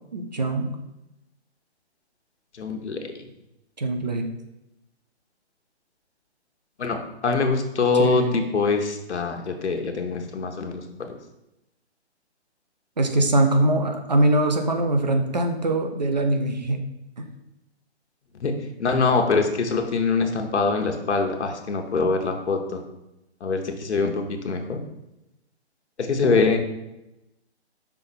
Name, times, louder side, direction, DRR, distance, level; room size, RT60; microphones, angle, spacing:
voice 1, 0.1-0.7 3.8-4.3 7.9-8.4 13.0-16.8 17.2-17.3, right 2 dB, 40° right, 5 dB, 0.6 m, -22 dB
voice 2, 2.5-3.1 6.8-11.2 18.4-18.5 18.8-22.8 23.4-24.8 26.0-26.6, left 4 dB, 85° left, 4 dB, 1.0 m, -24 dB
5.8 x 3.9 x 4.2 m, 0.92 s
hypercardioid pair, 180°, 34 cm